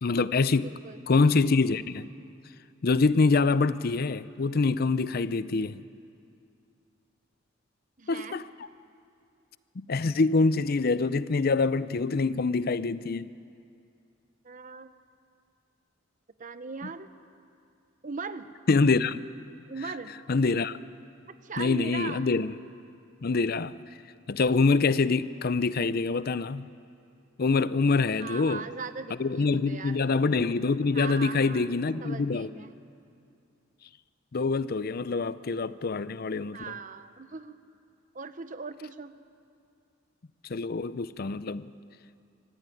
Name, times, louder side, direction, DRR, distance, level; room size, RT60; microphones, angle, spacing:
voice 1, 0.0-0.7 1.1-2.1 2.8-5.8 8.1-8.4 9.8-13.3 18.7-19.2 20.3-20.8 21.6-22.5 23.2-23.8 24.3-26.7 27.4-28.6 29.2-32.5 34.3-36.6 40.5-41.7, left 4 dB, 50° left, 0.5 m, -25 dB
voice 2, 0.6-1.0 8.0-8.4 14.4-14.9 16.4-17.1 18.0-18.5 19.7-20.1 21.3-22.3 28.2-30.0 30.9-31.7 32.0-32.8 36.5-37.6 38.1-39.2, right 4 dB, 40° right, 0.9 m, -39 dB
sound 1, 27.7-28.8 30.4-32.0, left 1 dB, 85° left, 3.9 m, -49 dB
25.0 x 14.5 x 9.3 m
head